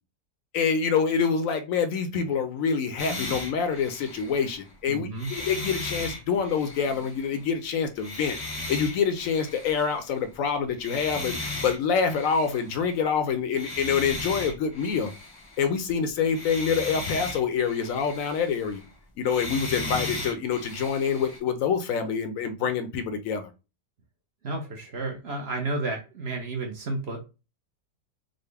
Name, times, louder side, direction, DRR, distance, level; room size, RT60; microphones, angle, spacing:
voice 1, 0.5-8.4 8.7-15.1 15.6-18.8 19.2-23.5, left 6 dB, 70° left, 8 dB, 0.9 m, -26 dB
sound 1, 3.0-4.7 5.1-7.5 8.0-10.3 10.7-12.9 13.5-15.9 16.3-18.9 19.2-21.4, left 2 dB, 20° left, 0.6 m, -36 dB
voice 2, 4.9-5.3 24.4-27.2, right 2 dB, 55° right, 2 dB, 0.8 m, -31 dB
3.8 x 2.0 x 3.3 m, 0.29 s
omnidirectional pair, 1.7 m